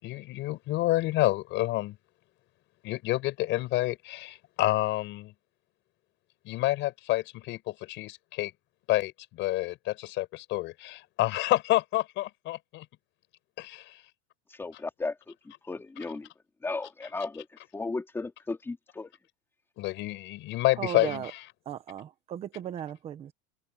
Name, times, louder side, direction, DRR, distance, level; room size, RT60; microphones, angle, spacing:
voice 1, 0.0-2.0 2.8-5.3 6.4-8.5 8.9-12.9 13.6-14.0 19.8-21.4, left 17 dB, 30° left, 5.5 m, -29 dB
voice 2, 14.5-16.3 16.6-17.5 17.7-19.1, left 3 dB, 5° left, 3.4 m, -35 dB
voice 3, 20.8-21.3 21.6-23.3, right 10 dB, 15° right, 1.1 m, -36 dB
supercardioid pair, 175°, 39 cm